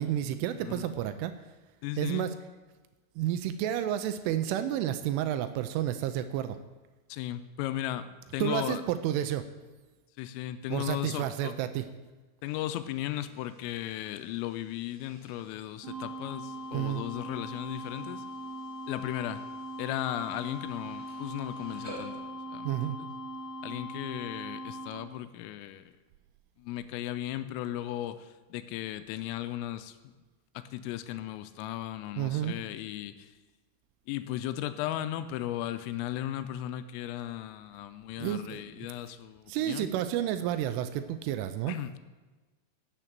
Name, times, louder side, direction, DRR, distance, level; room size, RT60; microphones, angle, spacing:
voice 1, 0.0-1.3 2.0-2.3 3.2-6.6 8.4-9.5 10.7-11.8 16.7-17.0 22.6-23.0 32.2-32.6 38.2-38.9 39.5-41.8, right 11 dB, 85° right, 10 dB, 3.0 m, -31 dB
voice 2, 0.6-1.0 1.8-2.3 7.1-8.8 10.2-11.5 12.4-18.2 18.9-19.4 19.8-23.1 23.6-25.8 26.6-30.0 30.5-33.3 34.1-39.9 41.7-42.0, left 13 dB, 85° left, 12 dB, 3.3 m, -36 dB
sound 1, 12.4-22.2, equal, 5° right, 3.2 m, -54 dB
sound 2, 15.8-24.9, equal, 50° right, 2.4 m, -40 dB
11.0 x 7.8 x 7.4 m, 1.2 s
omnidirectional pair, 5.9 m